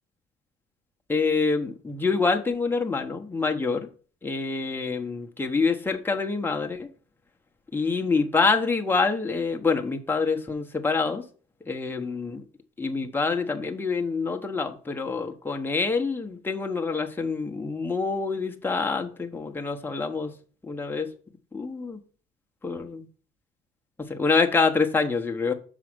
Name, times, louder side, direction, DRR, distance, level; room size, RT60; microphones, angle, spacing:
voice 1, 1.1-3.9 4.2-6.9 7.7-11.2 11.7-12.4 12.8-20.3 20.6-21.1 21.5-22.0 22.6-23.1 24.1-25.5, left 4 dB, 10° left, 1.0 m, -26 dB
6.3 x 4.8 x 6.1 m
cardioid pair, 110°, 17 cm